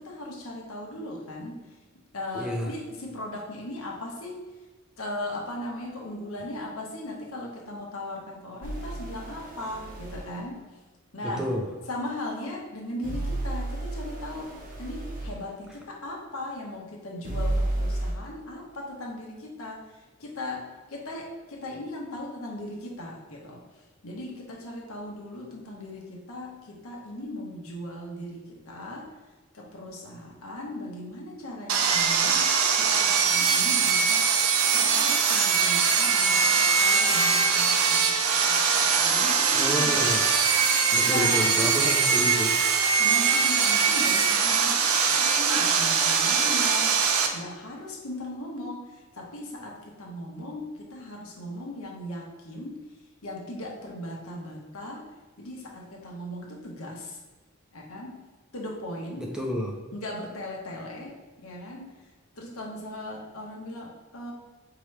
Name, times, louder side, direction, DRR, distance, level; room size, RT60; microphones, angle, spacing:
voice 1, 0.0-1.6 2.1-4.4 5.0-10.7 11.1-11.5 11.9-14.5 14.8-23.6 24.0-29.1 29.5-34.3 34.7-39.9 41.0-41.5 42.9-44.8 45.0-47.0 47.3-52.9 53.2-55.1 55.4-57.2 57.7-58.2 58.5-59.3 59.9-62.0 62.4-64.3, left 1 dB, 85° left, -2 dB, 1.0 m, -38 dB
voice 2, 2.3-2.7 11.2-11.7 39.5-40.7 40.9-42.6 59.2-59.7, equal, 5° right, 0 dB, 0.4 m, -30 dB
sound 1, 8.6-10.3 13.0-15.4 17.2-18.1, right 1 dB, 40° right, 0.8 m, -32 dB
Sawing, 31.7-47.3, right 6 dB, 85° right, 0.5 m, -22 dB
sound 2, 34.6-46.2, left 3 dB, 65° left, 0.6 m, -36 dB
4.6 x 2.9 x 3.2 m, 1.2 s
head